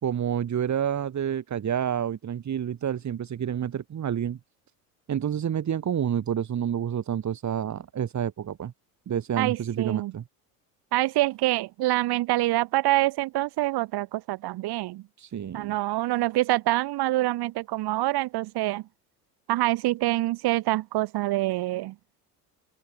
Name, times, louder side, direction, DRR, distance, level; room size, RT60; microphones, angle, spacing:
voice 1, 0.0-4.4 5.1-8.7 9.1-10.2 15.2-15.8, right 9 dB, 35° right, 4.9 m, -29 dB
voice 2, 9.4-10.1 10.9-15.0 15.5-18.8 19.5-21.9, right 17 dB, 50° right, 3.6 m, -26 dB
open air
hypercardioid pair, 70°, 48 cm